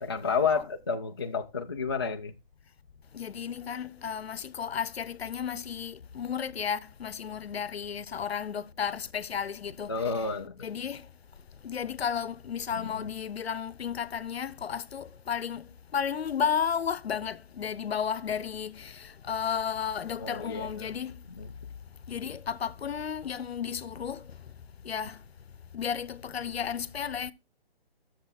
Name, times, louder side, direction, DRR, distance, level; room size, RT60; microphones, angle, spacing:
voice 1, 0.0-2.3 9.9-10.5 12.7-13.1 20.2-20.9 21.3-21.5, left 5 dB, 25° left, 0.4 m, -31 dB
voice 2, 3.1-9.9 10.6-11.1 11.6-21.2 22.1-24.2 24.8-25.2 25.7-27.3, left 7 dB, 80° left, 0.8 m, -33 dB
11.0 x 6.8 x 4.1 m
hypercardioid pair, 165°, 31 cm